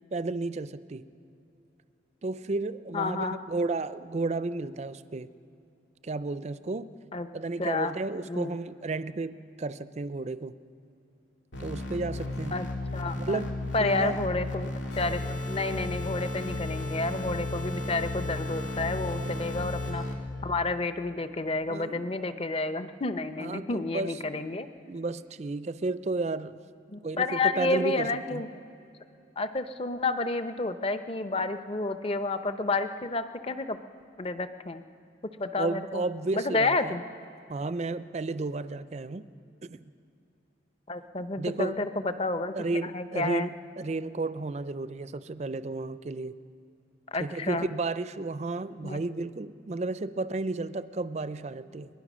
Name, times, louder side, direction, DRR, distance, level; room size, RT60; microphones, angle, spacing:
voice 1, 0.1-1.0 2.2-5.3 6.0-6.9 7.3-10.5 11.6-12.6 13.2-13.5 13.8-14.2 19.2-19.3 21.7-22.1 23.4-24.2 24.9-26.6 27.0-28.4 35.6-37.0 37.5-39.2 39.6-39.8 41.4-41.8 42.5-43.5 43.8-46.4 47.2-51.9, right 3 dB, 35° right, 14 dB, 0.4 m, -32 dB
voice 2, 2.9-3.4 7.1-7.3 7.6-7.9 8.3-8.5 12.5-12.7 12.9-13.4 13.7-20.0 20.4-24.7 26.9-28.5 29.4-33.8 34.2-34.8 35.4-36.0 36.3-37.0 40.9-42.5 42.9-43.5 47.1-47.7 48.8-49.0, left 3 dB, 30° left, 10 dB, 0.7 m, -30 dB
sound 1, 11.5-20.1, left 2 dB, 90° left, 2.5 m, -34 dB
sound 2, 14.9-19.9, left 2 dB, 65° left, 6.0 m, -42 dB
22.0 x 19.5 x 6.2 m, 2.8 s
head